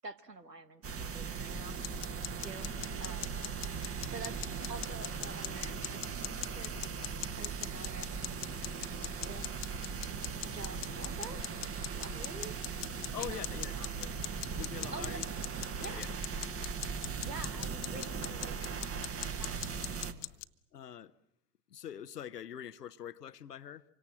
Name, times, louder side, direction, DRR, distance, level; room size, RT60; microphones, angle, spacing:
voice 1, 0.0-1.8 2.4-2.7 3.0-3.4 4.1-4.4 4.7-8.5 9.2-9.5 10.5-11.4 11.9-12.6 13.2-14.0 14.9-15.2 15.8-16.1 17.2-19.8, right 3 dB, 90° right, 1.5 m, -47 dB
sound 1, 0.8-20.1, right 6 dB, 30° right, 1.7 m, -39 dB
sound 2, 1.8-20.4, left 22 dB, 50° left, 1.0 m, -43 dB
voice 2, 13.0-13.7 14.0-14.1 14.5-15.2 15.8-16.1 20.7-21.1 21.7-23.8, left 9 dB, 80° left, 1.0 m, -44 dB
26.5 x 25.0 x 7.8 m
figure-of-eight pair, 75°, 47 cm